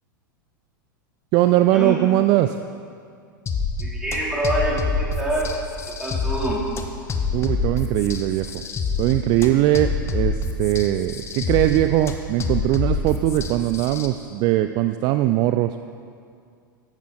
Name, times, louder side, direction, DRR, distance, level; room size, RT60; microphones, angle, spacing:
voice 1, 1.3-2.6 7.3-8.5 9.0-15.8, right 14 dB, 40° right, 10 dB, 0.5 m, -20 dB
sound 1, 3.5-14.1, left 4 dB, 25° left, 1.3 m, -27 dB
voice 2, 3.8-5.5 6.0-6.6, right 1 dB, 5° right, -6 dB, 4.3 m, -25 dB
15.5 x 12.0 x 4.4 m, 2.3 s
figure-of-eight pair, 90°, 11 cm